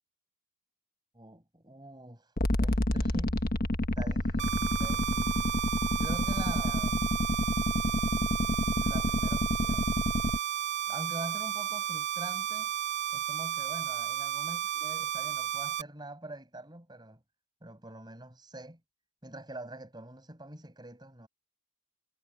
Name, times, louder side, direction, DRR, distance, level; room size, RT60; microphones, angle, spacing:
voice 1, 1.1-3.5 4.0-5.5 5.9-7.1 8.8-9.9 10.9-12.7 13.1-17.2 17.6-18.8 19.2-21.3, right 1 dB, 20° right, 6.7 m, -45 dB
sound 1, 2.4-10.4, left 1 dB, 40° left, 1.4 m, -29 dB
sound 2, 4.4-15.8, right 11 dB, 55° right, 2.6 m, -33 dB
head